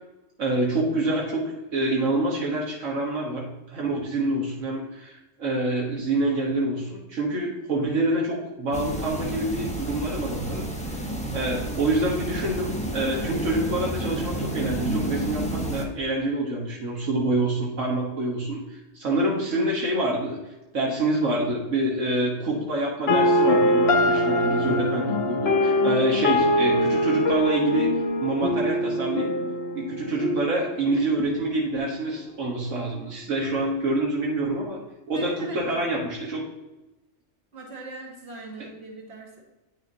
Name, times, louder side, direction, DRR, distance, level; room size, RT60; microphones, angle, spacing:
voice 1, 0.4-11.0 11.3-20.4 20.7-27.9 28.2-29.3 29.8-34.8 35.1-36.4 38.6-38.7, right 2 dB, 80° right, -3 dB, 1.7 m, -26 dB
sound 1, 8.7-15.8, right 1 dB, 5° left, 0.8 m, -31 dB
sound 2, 23.1-31.1, left 1 dB, 60° left, 0.9 m, -23 dB
voice 2, 35.1-35.8 36.2-36.3 37.5-39.4, right 3 dB, 60° right, -1 dB, 1.9 m, -41 dB
9.0 x 6.4 x 2.7 m, 1.0 s
omnidirectional pair, 1.3 m